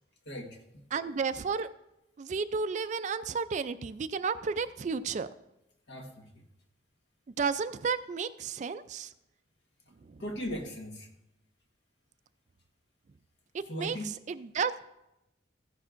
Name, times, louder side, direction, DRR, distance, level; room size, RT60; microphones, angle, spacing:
voice 1, 0.2-0.8 5.9-6.3 10.2-11.1 13.7-14.1, equal, 65° left, 3 dB, 1.4 m, -38 dB
voice 2, 0.9-1.7 2.2-5.3 7.4-9.1 10.1-10.2 13.5-14.0 14.3-14.9, right 5 dB, 40° right, 13 dB, 0.3 m, -32 dB
14.5 x 10.5 x 2.5 m, 0.90 s
head